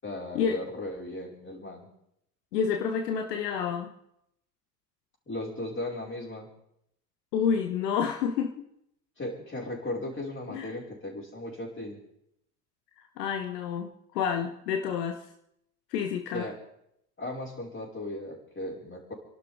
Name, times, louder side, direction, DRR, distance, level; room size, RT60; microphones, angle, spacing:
voice 1, 0.0-1.9 5.3-6.5 9.2-12.0 16.3-16.6 17.2-19.1, left 1 dB, 25° left, -3 dB, 5.0 m, -36 dB
voice 2, 2.5-3.9 7.3-8.6 10.5-10.7 13.0-15.2 15.9-16.5, left 7 dB, 70° left, 5 dB, 1.2 m, -29 dB
29.5 x 12.0 x 3.6 m, 0.76 s
figure-of-eight pair, 60°, 49 cm